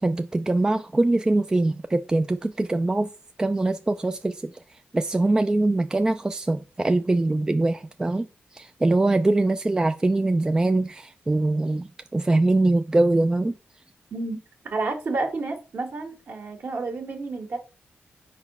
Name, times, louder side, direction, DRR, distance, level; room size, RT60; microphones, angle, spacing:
voice 1, 0.0-3.1 3.4-4.6 4.9-13.6, right 2 dB, 15° right, 0.3 m, -23 dB
voice 2, 14.7-17.6, right 3 dB, 60° right, 1.8 m, -30 dB
4.9 x 4.1 x 5.4 m
wide cardioid pair, 120°, 4 cm